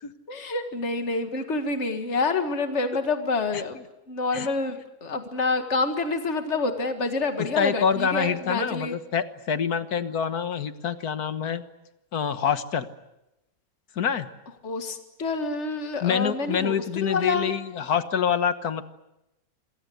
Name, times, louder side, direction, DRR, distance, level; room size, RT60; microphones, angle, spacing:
voice 1, 0.3-3.8 4.1-9.0 14.6-16.7 17.0-17.5, left 3 dB, 50° left, 6 dB, 2.2 m, -27 dB
voice 2, 7.6-11.6 12.1-12.9 14.0-14.3 16.0-18.8, left 7 dB, 80° left, 10 dB, 1.9 m, -26 dB
26.5 x 22.5 x 8.0 m, 0.91 s
omnidirectional pair, 1.6 m